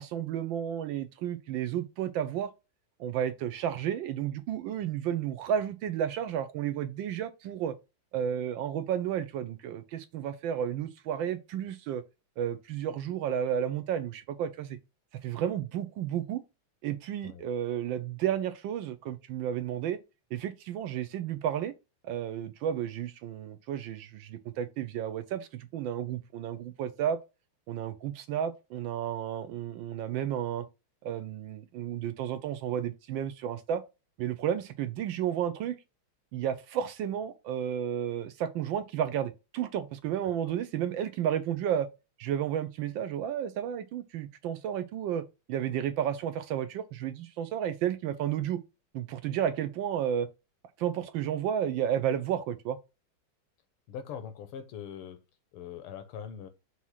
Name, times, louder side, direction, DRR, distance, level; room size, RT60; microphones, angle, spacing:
voice 1, 0.0-2.5 3.0-7.7 8.1-12.0 12.4-14.8 15.2-16.4 16.8-20.0 20.3-21.7 22.0-27.2 27.7-30.7 31.0-33.8 34.2-35.8 36.3-41.9 42.2-48.6 48.9-50.3 50.8-52.8, right 9 dB, 75° right, 1.2 m, -32 dB
voice 2, 53.9-55.2 55.5-56.5, left 8 dB, 90° left, 1.8 m, -42 dB
6.1 x 2.8 x 5.5 m
omnidirectional pair, 2.4 m